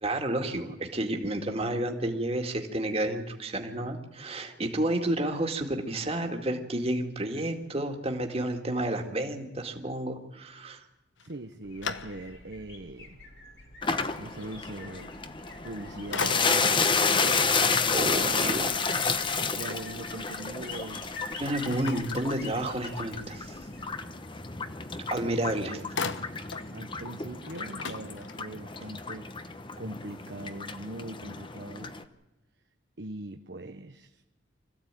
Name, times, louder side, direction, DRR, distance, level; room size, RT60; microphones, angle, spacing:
voice 1, 0.0-10.8 17.9-18.7 21.4-23.6 25.1-25.8, right 1 dB, 30° right, 4 dB, 2.2 m, -30 dB
sound 1, 11.2-12.6 13.1-13.2 15.5-15.8 16.1-16.9 21.6-22.9 25.0-25.1 25.4-26.7 27.1-27.2 27.4-28.7, left 5 dB, 90° left, 1.2 m, -38 dB
voice 2, 11.2-13.3 14.1-15.1 15.6-18.6 19.4-21.1 25.2-25.9 26.7-31.9 33.0-34.2, right 2 dB, 65° right, 6 dB, 1.0 m, -41 dB
sound 2, 11.6-23.9, left 3 dB, 75° left, 5.2 m, -47 dB
sound 3, 13.8-32.0, left 4 dB, 25° left, 1.0 m, -31 dB
25.0 x 15.0 x 9.1 m, 1.0 s
head